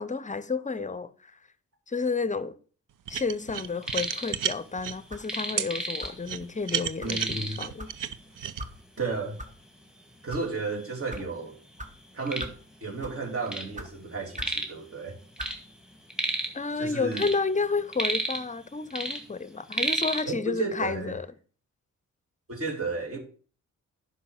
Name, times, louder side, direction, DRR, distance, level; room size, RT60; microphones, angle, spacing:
voice 1, 0.0-1.4 1.9-2.6 3.1-7.9 16.5-21.3, left 4 dB, 25° left, 0.6 m, -31 dB
sound 1, 3.1-5.0 5.6-5.7 6.2-8.6, right 9 dB, 85° right, 0.7 m, -31 dB
sound 2, 3.6-4.4 4.6-6.4 6.7-6.8 7.1-7.7 8.5-8.6 9.1-9.2 10.0-10.1 10.3-11.2 11.7-13.7 14.0-14.8 15.1-16.6 17.0-18.6 18.9-20.2, right 1 dB, ahead, 2.0 m, -32 dB
sound 3, 5.1-5.3 6.0-6.3 7.0-7.2 7.8-8.0 8.6-8.7 9.4-9.5 10.1-10.4 11.1-11.2 11.8-11.9 12.4-12.6 13.0-13.2 13.7-13.9 14.3-14.6 15.4-15.6, right 1 dB, 25° right, 1.5 m, -40 dB
voice 2, 7.0-7.6 9.0-9.4 10.2-11.5 12.1-12.5 12.8-15.1 16.8-17.3 20.2-21.2 22.5-23.2, right 3 dB, 45° right, 3.0 m, -33 dB
10.0 x 5.5 x 6.4 m
wide cardioid pair, 105°, 31 cm